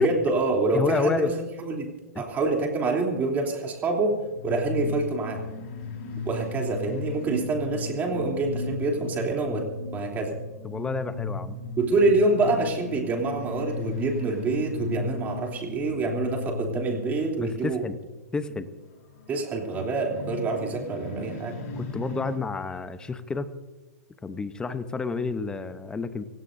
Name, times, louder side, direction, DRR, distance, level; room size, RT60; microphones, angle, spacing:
voice 1, 0.0-1.3 1.6-1.9 2.2-4.1 4.4-5.4 6.2-10.4 11.8-17.8 19.3-21.5, right 3 dB, 20° right, 1 dB, 3.2 m, -26 dB
voice 2, 0.7-1.3 2.1-2.2 10.6-11.6 17.4-18.0 18.3-18.7 21.8-23.5 24.2-26.2, left 4 dB, 10° left, 12 dB, 0.8 m, -29 dB
sound 1, 4.1-18.1 18.6-22.4, left 4 dB, 50° left, 3.8 m, -36 dB
25.5 x 16.5 x 2.7 m, 1.2 s
hypercardioid pair, 145°, 9 cm